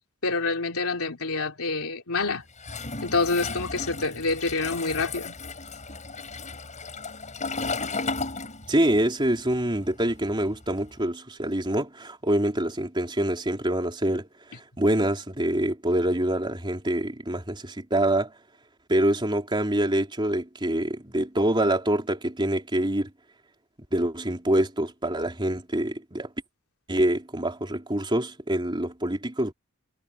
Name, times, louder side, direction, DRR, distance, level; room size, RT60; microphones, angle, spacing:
voice 1, 0.2-2.4 3.0-5.4, left 3 dB, 90° left, 2.8 m, -27 dB
Toilet flush, 2.6-9.0 9.3-10.9, left 3 dB, 35° left, 7.8 m, -34 dB
voice 2, 8.7-14.3 14.5-18.3 18.9-23.1 23.9-26.3 26.9-29.5, right 1 dB, 20° right, 3.5 m, -25 dB
head